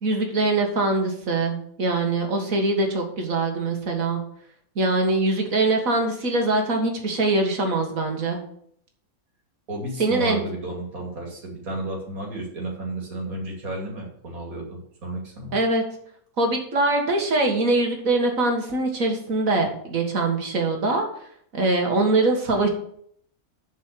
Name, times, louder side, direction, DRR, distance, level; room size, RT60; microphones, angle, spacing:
voice 1, 0.0-4.2 4.8-8.4 10.0-10.4 15.5-15.8 16.4-21.1 21.5-22.7, right 2 dB, 70° right, 3 dB, 2.2 m, -23 dB
voice 2, 9.7-15.6, right 1 dB, 90° right, -1 dB, 3.0 m, -32 dB
8.0 x 5.5 x 7.5 m, 0.66 s
omnidirectional pair, 1.5 m